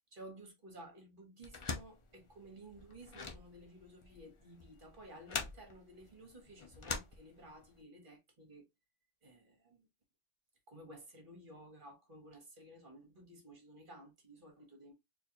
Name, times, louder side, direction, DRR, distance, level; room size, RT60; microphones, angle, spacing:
voice 1, 0.1-8.7 9.2-9.9 10.7-14.9, right 1 dB, 40° right, 1.4 m, -55 dB
sound 1, 1.4-7.8, left 4 dB, 40° left, 0.4 m, -44 dB
4.3 x 2.5 x 2.8 m
omnidirectional pair, 1.3 m